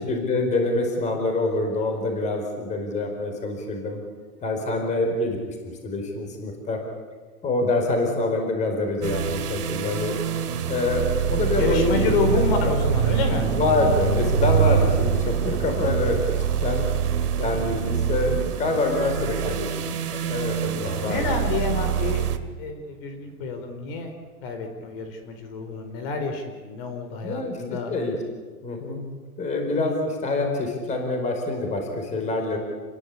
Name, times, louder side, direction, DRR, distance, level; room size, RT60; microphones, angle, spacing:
voice 1, 0.0-4.0 4.4-5.6 5.8-6.8 7.4-10.2 10.7-12.4 13.5-16.8 17.4-21.3 27.2-28.2 28.6-29.0 29.4-32.6, left 2 dB, 15° left, 3 dB, 4.6 m, -26 dB
sound 1, 9.0-22.4, right 9 dB, 80° right, 2.6 m, -26 dB
sound 2, 9.7-19.6, right 6 dB, 45° right, 3.5 m, -28 dB
voice 2, 11.6-13.5 21.0-22.3 22.6-24.1 24.4-27.9, left 4 dB, 40° left, 6 dB, 4.6 m, -28 dB
29.5 x 21.0 x 8.6 m, 1.4 s
hypercardioid pair, 155°, 46 cm